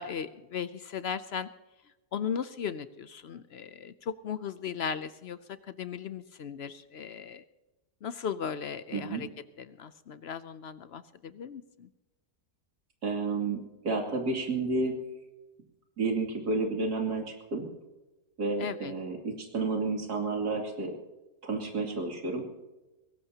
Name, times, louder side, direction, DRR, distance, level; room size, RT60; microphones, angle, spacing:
voice 1, 0.0-1.5 2.1-5.4 5.7-7.4 8.0-9.3 9.6-11.9 18.6-18.9, left 7 dB, 65° left, 13 dB, 0.6 m, -37 dB
voice 2, 8.9-9.2 13.0-13.6 13.8-15.0 16.0-17.7 18.4-20.9 21.4-22.4, right 3 dB, 85° right, 2 dB, 3.2 m, -31 dB
21.5 x 18.0 x 2.9 m, 1.1 s
omnidirectional pair, 1.7 m